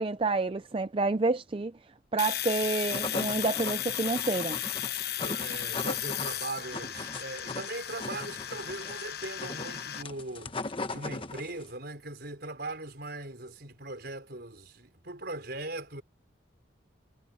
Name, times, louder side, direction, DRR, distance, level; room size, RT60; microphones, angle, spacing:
voice 1, 0.0-1.7 2.1-4.6, right 3 dB, 30° right, 0.5 m, -29 dB
Domestic sounds home sounds, 2.2-10.0, left 12 dB, 55° left, 1.1 m, -35 dB
sound 1, 2.6-11.7, left 3 dB, 30° left, 1.1 m, -39 dB
voice 2, 5.2-10.5 10.9-16.0, right 2 dB, 55° right, 5.6 m, -40 dB
head